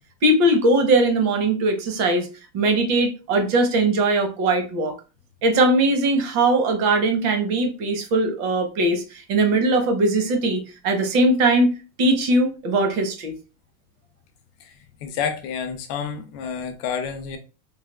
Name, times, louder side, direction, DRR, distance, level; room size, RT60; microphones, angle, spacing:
voice 1, 0.2-2.3 2.5-5.0 5.4-11.7 12.0-13.3, right 2 dB, 40° right, 0.8 m, -20 dB
voice 2, 14.6-17.4, left 6 dB, 50° left, 0.6 m, -29 dB
3.3 x 2.3 x 2.2 m
supercardioid pair, 165°, 41 cm